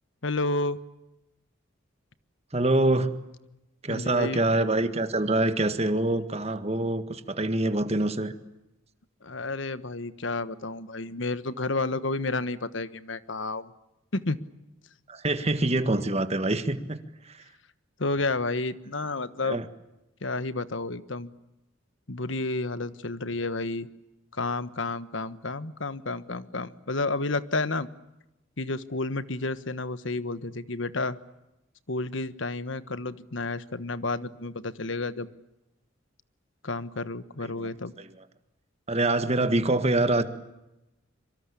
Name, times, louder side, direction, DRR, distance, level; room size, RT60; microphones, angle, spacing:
voice 1, 0.2-0.8 3.9-4.4 9.2-13.7 14.1-14.4 18.0-19.6 20.2-21.3 22.1-23.9 24.3-27.9 28.6-31.2 31.9-35.3 36.6-37.9, left 2 dB, 65° left, 14 dB, 1.3 m, -31 dB
voice 2, 2.5-3.1 3.8-8.3 15.1-17.0 17.3-17.4 19.5-19.6 37.6-37.7 38.9-40.2, right 2 dB, 30° right, 10 dB, 1.7 m, -25 dB
25.5 x 24.0 x 8.5 m, 0.93 s
head